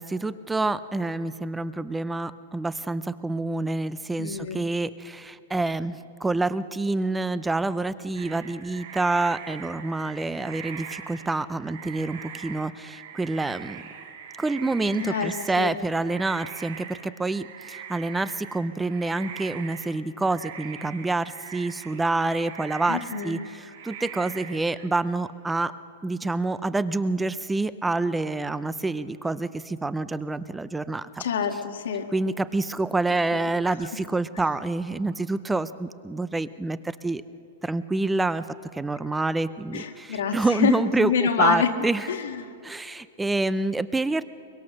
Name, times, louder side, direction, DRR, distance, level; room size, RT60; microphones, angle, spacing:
voice 1, 0.0-13.8 14.4-25.7 26.0-31.2 32.1-37.2 37.6-38.4 38.7-42.1 42.6-44.2, right 2 dB, 5° right, 15 dB, 0.5 m, -27 dB
voice 2, 4.2-4.7 14.9-15.7 22.9-23.4 31.2-32.1 33.3-33.5 39.7-42.5, left 7 dB, 85° left, 4 dB, 1.9 m, -27 dB
sound 1, 8.1-24.9, right 7 dB, 65° right, 2.6 m, -42 dB
23.0 x 22.5 x 6.4 m, 2.6 s
supercardioid pair, 165°, 0 cm